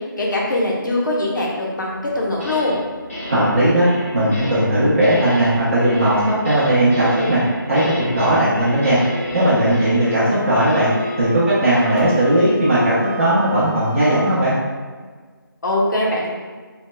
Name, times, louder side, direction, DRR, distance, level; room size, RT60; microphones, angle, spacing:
voice 1, 0.2-2.8 15.6-16.3, left 1 dB, 60° left, -3 dB, 1.0 m, -21 dB
sound 1, 2.1-2.8 3.1-13.5, left 1 dB, 40° left, 1.3 m, -32 dB
voice 2, 3.3-3.9 4.1-7.4 7.7-9.0 9.3-10.9 11.2-14.5, right 1 dB, 35° right, -12 dB, 1.0 m, -17 dB
Wind instrument woodwind instrument, 10.0-14.6, right 2 dB, 85° left, 0.6 m, -35 dB
4.8 x 3.3 x 2.2 m, 1.5 s
figure-of-eight pair, 160°, 12 cm